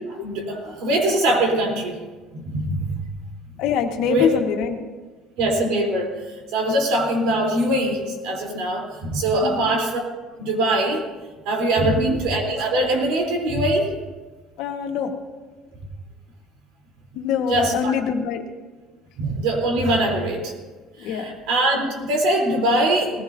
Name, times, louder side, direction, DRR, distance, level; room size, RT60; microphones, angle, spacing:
voice 1, 0.1-2.0 2.3-3.0 4.0-4.4 5.4-6.1 6.5-10.0 10.4-11.1 11.5-13.9 17.5-17.9 19.2-20.5 21.0-23.2, right 1 dB, 80° right, 1 dB, 3.4 m, -22 dB
voice 2, 3.6-4.8 9.4-9.7 11.8-12.2 14.6-15.1 17.1-18.4 21.0-21.4, left 8 dB, 75° left, 4 dB, 1.5 m, -24 dB
19.0 x 16.0 x 2.7 m, 1.3 s
cardioid pair, 130°, 0 cm